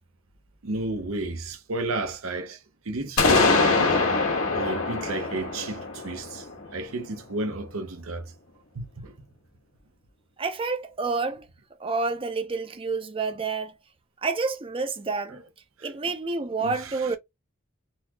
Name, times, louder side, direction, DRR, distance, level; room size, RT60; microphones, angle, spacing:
voice 1, 0.6-2.6 2.8-4.0 4.5-6.5 6.7-8.3 8.7-9.1 15.8-16.0 16.6-17.1, right 2 dB, 80° right, 0.8 m, -32 dB
sound 1, 3.2-7.0, left 3 dB, 90° left, 1.2 m, -23 dB
voice 2, 10.4-11.5 11.8-13.7 14.2-15.4 15.8-17.2, right 4 dB, 25° right, 0.6 m, -29 dB
4.0 x 2.8 x 2.2 m
head